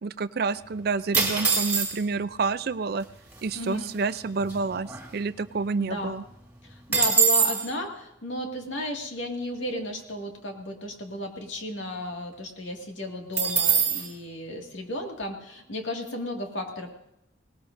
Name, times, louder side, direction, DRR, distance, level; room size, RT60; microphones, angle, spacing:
voice 1, 0.0-3.1 3.4-6.2, right 4 dB, 55° right, 14 dB, 0.4 m, -29 dB
sound 1, 1.1-2.2 3.0-3.1 3.3-3.7 4.1-5.6 5.9-6.0 6.3-7.7 13.4-14.1, right 6 dB, 10° right, 2.8 m, -24 dB
voice 2, 3.5-3.9 5.8-6.1 6.6-16.9, left 1 dB, 85° left, 2 dB, 2.1 m, -34 dB
19.5 x 19.0 x 2.6 m, 0.83 s
head